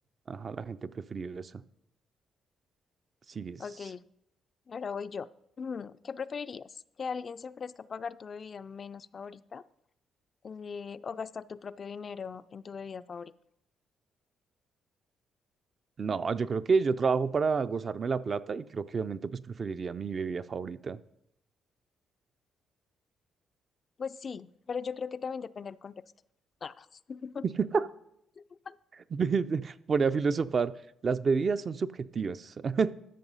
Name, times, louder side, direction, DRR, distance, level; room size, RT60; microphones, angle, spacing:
voice 1, 0.3-1.6 3.3-3.6 16.0-21.0 27.6-27.9 29.1-30.7 31.0-32.9, right 5 dB, 40° right, 12 dB, 0.4 m, -29 dB
voice 2, 3.6-4.1 4.7-5.3 5.6-9.6 10.4-13.3 24.0-25.9 26.6-27.4 28.4-28.8, left 6 dB, 45° left, 13 dB, 0.3 m, -39 dB
13.0 x 5.4 x 5.4 m, 0.77 s
cardioid pair, 90°, 0 cm